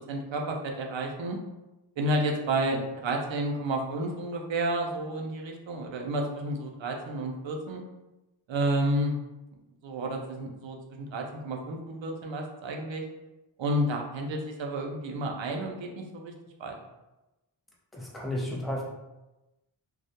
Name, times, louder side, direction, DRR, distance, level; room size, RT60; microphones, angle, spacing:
voice 1, 0.1-1.4 2.0-7.8 8.5-9.1 9.8-13.0 13.6-16.3 16.6-16.7, right 1 dB, 70° right, 1 dB, 0.5 m, -31 dB
voice 2, 17.9-18.8, left 1 dB, ahead, -3 dB, 0.4 m, -32 dB
2.3 x 2.1 x 2.8 m, 1.0 s
wide cardioid pair, 100°, 48 cm